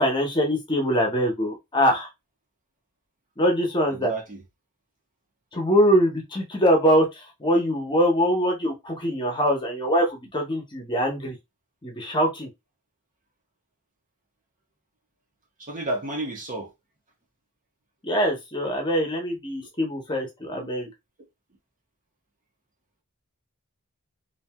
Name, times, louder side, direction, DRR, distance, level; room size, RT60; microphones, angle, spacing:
voice 1, 0.0-2.1 3.4-4.1 5.5-11.4 11.8-12.5 18.0-20.9, equal, 20° left, 0.8 m, -23 dB
voice 2, 3.9-4.4 15.6-16.7 20.5-20.7, right 2 dB, 35° right, 0.9 m, -31 dB
3.1 x 2.6 x 2.2 m
head